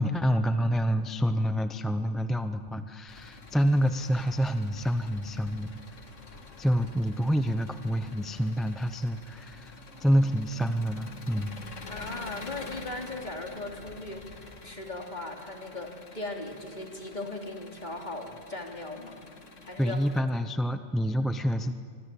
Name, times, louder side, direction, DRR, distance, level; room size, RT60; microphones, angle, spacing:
voice 1, 0.0-6.0 6.6-11.5 19.8-21.7, equal, ahead, 8 dB, 0.7 m, -27 dB
Engine, 3.1-20.2, left 3 dB, 80° left, 2.3 m, -47 dB
voice 2, 11.9-19.2 19.6-20.0, left 2 dB, 35° left, 1 dB, 3.4 m, -38 dB
27.0 x 25.5 x 8.5 m, 2.2 s
omnidirectional pair, 1.3 m